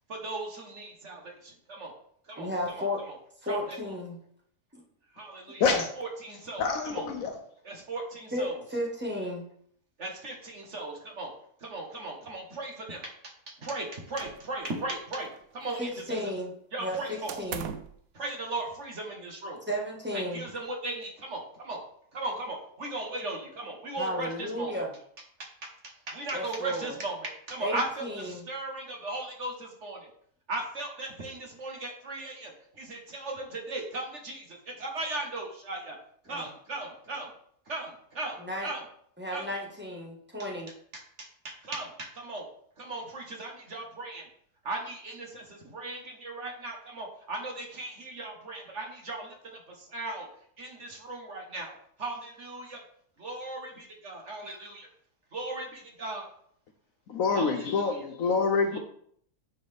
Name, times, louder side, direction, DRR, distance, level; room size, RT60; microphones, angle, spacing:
voice 1, 0.1-1.9 2.2-3.2 3.5-4.0 5.1-6.7 6.9-7.1 7.6-8.6 10.0-11.3 11.6-13.1 13.5-16.2 16.7-17.4 18.1-19.6 20.1-21.8 22.1-24.8 25.4-25.7 26.1-30.1 30.5-36.0 36.2-37.3 37.7-38.8 39.3-39.5 40.9-42.4 42.8-44.3 44.6-50.3 50.6-51.7 52.0-52.8 53.2-54.9 55.3-56.3 57.3-58.0 58.7-58.8, right 2 dB, 50° right, 1 dB, 1.5 m, -37 dB
voice 2, 2.4-3.0 3.4-4.2 4.7-4.8 8.3-9.5 15.8-16.5 16.8-17.7 19.7-20.4 24.0-24.9 26.3-26.9 27.6-28.5 36.3-36.5 38.4-38.7 39.2-40.7, equal, 5° right, -2 dB, 1.3 m, -33 dB
voice 3, 6.6-7.4 57.1-58.8, left 5 dB, 65° left, 5 dB, 1.0 m, -26 dB
sound 1, 14.2-14.9 15.2-16.1 17.3-18.0, right 9 dB, 70° right, 0.9 m, -41 dB
9.6 x 4.0 x 3.4 m, 0.65 s
omnidirectional pair, 1.7 m